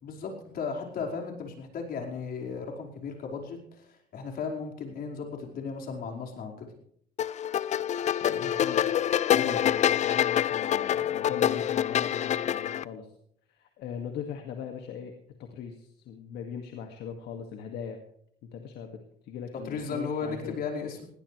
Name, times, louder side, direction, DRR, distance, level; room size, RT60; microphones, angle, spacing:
voice 1, 0.0-6.7 19.6-21.1, left 5 dB, 60° left, 0 dB, 4.9 m, -35 dB
sound 1, 7.2-12.8, left 10 dB, 45° left, 0.5 m, -26 dB
voice 2, 8.2-13.1 13.5-15.1 15.4-18.0 18.5-20.6, left 7 dB, 75° left, 4 dB, 2.2 m, -39 dB
20.5 x 17.0 x 3.3 m, 0.67 s
cardioid pair, 110°, 17 cm